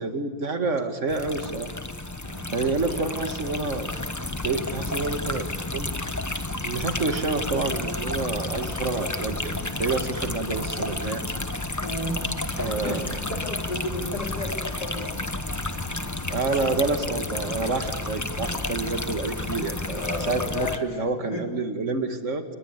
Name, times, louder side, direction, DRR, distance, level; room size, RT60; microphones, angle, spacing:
voice 1, 0.0-1.7 2.5-3.9 4.4-5.9 6.6-9.5 9.8-11.2 12.6-13.0 16.3-22.4, right 3 dB, 35° right, 7 dB, 2.4 m, -28 dB
sound 1, 1.1-20.8, left 2 dB, 15° left, 0.5 m, -31 dB
voice 2, 11.8-15.2 15.7-16.2 18.6-18.7 20.0-21.0 21.3-21.5, left 2 dB, 50° left, 1 dB, 4.5 m, -34 dB
29.5 x 21.0 x 8.3 m, 1.3 s
omnidirectional pair, 2.2 m